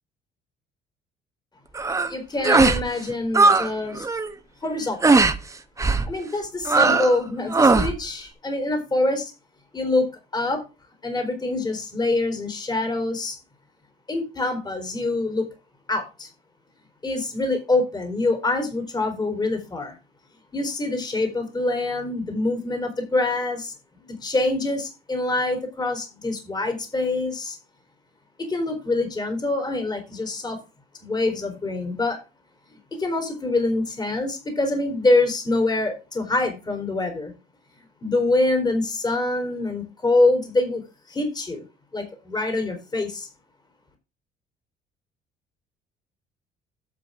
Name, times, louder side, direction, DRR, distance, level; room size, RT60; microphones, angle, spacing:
sound 1, 1.7-2.1 2.4-2.8 3.1-3.7 4.0-4.3 5.0-5.4 5.8-6.1 6.7-7.2 7.5-7.9, right 3 dB, 20° right, 1.3 m, -18 dB
voice 1, 2.1-4.1 4.6-5.0 6.1-9.3 9.7-10.6 11.0-13.4 14.1-15.4 15.9-16.3 17.0-20.0 20.5-23.7 24.0-27.6 28.4-30.6 31.0-32.2 33.0-37.3 38.0-40.8 41.1-41.6 41.9-43.3, left 2 dB, 25° left, 5 dB, 4.3 m, -25 dB
12.0 x 7.7 x 3.8 m, 0.29 s
cardioid pair, 110°, 17 cm